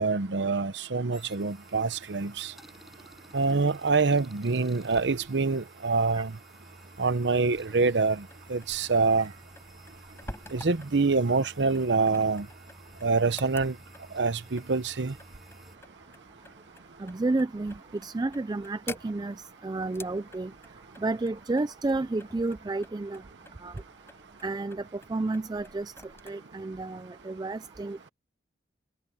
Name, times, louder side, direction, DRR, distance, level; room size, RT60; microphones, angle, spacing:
voice 1, 0.0-2.5 3.3-6.3 7.0-9.3 10.5-12.5 13.0-13.8 14.1-15.1, right 4 dB, 85° right, 0.8 m, -26 dB
sound 1, 1.1-15.8, equal, ahead, 7.7 m, -53 dB
sound 2, 7.5-26.3, left 2 dB, 15° left, 5.1 m, -50 dB
voice 2, 17.0-19.4 19.6-20.5 21.0-23.2 23.6-23.7 24.4-25.9 26.3-28.1, right 2 dB, 25° right, 0.4 m, -31 dB
open air
head